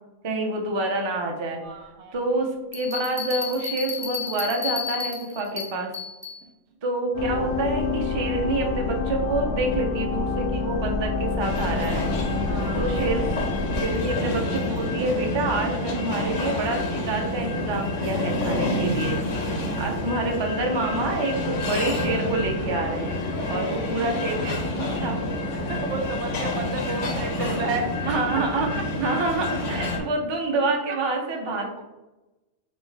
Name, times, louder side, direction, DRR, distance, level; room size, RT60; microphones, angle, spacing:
voice 1, 0.2-1.6 2.1-5.9 6.8-12.1 12.7-13.3 13.8-19.2 19.8-25.2 26.9-27.0 28.1-31.8, right 2 dB, 35° right, 2 dB, 0.4 m, -27 dB
voice 2, 1.5-2.2 12.4-13.0 22.1-22.3 23.3-23.8 25.7-28.2 28.8-28.9 29.9-30.0 30.9-31.0, right 3 dB, 75° right, 5 dB, 0.9 m, -32 dB
sound 1, 2.7-6.4, left 6 dB, 20° left, 0.5 m, -32 dB
sound 2, 7.1-13.8, left 3 dB, 65° left, 0.8 m, -27 dB
sound 3, 11.4-30.0, left 1 dB, 85° left, 1.1 m, -28 dB
4.5 x 2.5 x 3.2 m, 1.1 s
omnidirectional pair, 1.2 m